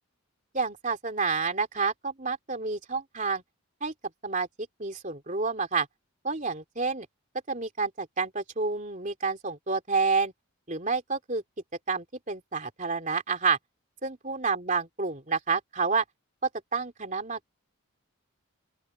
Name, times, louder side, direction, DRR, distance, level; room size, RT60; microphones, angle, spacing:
voice 1, 0.5-3.4 3.8-3.9 4.2-4.5 4.8-5.9 6.2-7.1 7.5-10.3 10.7-11.4 11.9-13.6 14.0-16.0 16.7-17.4, right 4 dB, 35° right, 3.3 m, -29 dB
open air
head